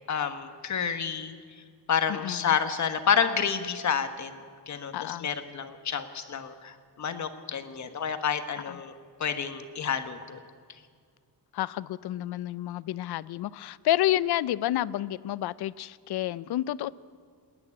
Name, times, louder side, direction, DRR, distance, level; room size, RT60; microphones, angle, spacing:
voice 1, 0.1-1.3 1.9-4.3 4.7-8.9 9.2-10.4, left 7 dB, 45° left, 1.3 m, -29 dB
voice 2, 2.1-2.6 4.9-5.3 8.7-8.8 11.5-16.9, left 13 dB, 70° left, 0.6 m, -30 dB
28.0 x 9.7 x 9.7 m
wide cardioid pair, 165°, 40 cm